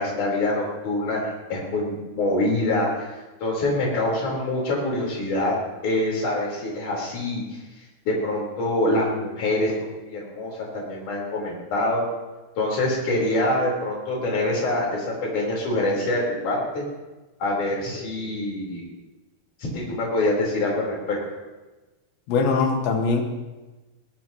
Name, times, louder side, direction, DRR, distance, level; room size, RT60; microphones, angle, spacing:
voice 1, 0.0-3.1 3.4-5.6 5.8-7.6 8.1-12.0 12.6-15.1 15.3-16.8 17.4-18.8 19.7-21.2, left 1 dB, 45° left, -2 dB, 5.4 m, -25 dB
voice 2, 22.3-23.2, left 4 dB, 85° left, 2 dB, 3.9 m, -21 dB
20.5 x 18.5 x 3.0 m, 1.2 s
omnidirectional pair, 5.1 m